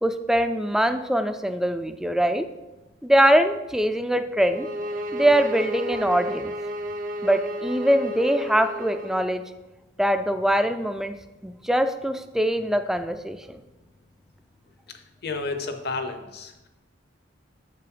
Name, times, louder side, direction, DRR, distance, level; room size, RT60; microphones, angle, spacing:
voice 1, 0.0-2.5 3.0-4.7 5.1-6.5 7.2-9.4 10.0-11.1 11.4-13.4, right 1 dB, 5° right, 8 dB, 0.4 m, -22 dB
sound 1, 4.4-9.3, equal, 45° right, 0.6 m, -32 dB
voice 2, 15.2-16.5, left 3 dB, 55° left, 7 dB, 0.9 m, -31 dB
6.8 x 6.8 x 5.0 m, 1.0 s
head